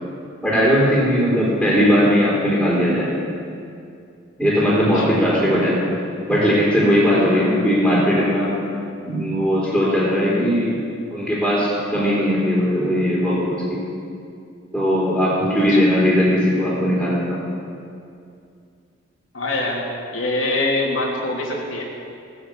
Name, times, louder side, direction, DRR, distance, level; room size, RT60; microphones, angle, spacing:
voice 1, 0.4-3.2 4.4-5.9 6.3-8.5 9.0-10.8 11.1-13.8 14.7-17.4, equal, 5° right, -8 dB, 3.5 m, -18 dB
voice 2, 19.3-19.9 20.1-21.8, left 2 dB, 90° left, -2 dB, 3.0 m, -24 dB
19.0 x 6.8 x 8.3 m, 2.4 s
head